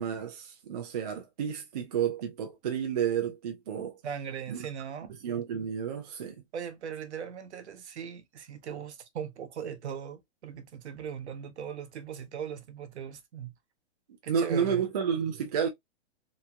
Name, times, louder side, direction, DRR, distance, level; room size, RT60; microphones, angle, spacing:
voice 1, 0.0-4.0 4.5-4.6 5.2-6.4 14.3-15.7, right 7 dB, 35° right, 0.5 m, -31 dB
voice 2, 4.0-5.2 6.5-13.5 14.2-14.9, right 8 dB, 70° right, 0.8 m, -39 dB
2.9 x 2.6 x 2.2 m
hypercardioid pair, 170°, 35 cm